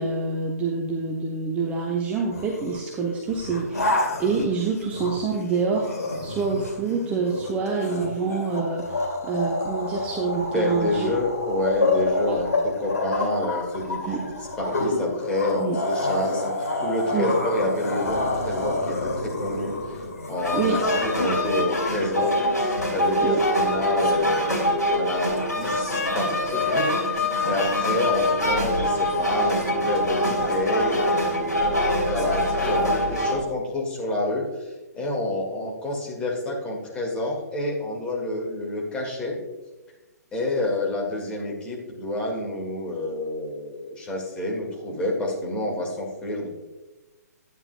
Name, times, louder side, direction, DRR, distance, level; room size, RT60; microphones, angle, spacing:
voice 1, 0.0-5.9 6.2-11.1 12.3-12.6 14.1-14.2 15.6-15.8 17.1-17.3 20.5-20.8 23.2-23.4, right 4 dB, 15° right, 0 dB, 0.8 m, -27 dB
sound 1, 2.3-2.8 3.3-5.3 5.7-21.3, left 2 dB, 65° left, 2.3 m, -28 dB
voice 2, 10.5-14.3 14.6-22.4 22.9-39.4 40.3-46.5, left 1 dB, 10° left, -2 dB, 1.9 m, -28 dB
sound 2, 20.4-33.4, left 1 dB, 80° left, 2.9 m, -24 dB
11.0 x 9.3 x 2.3 m, 1.1 s
figure-of-eight pair, 130°, 9 cm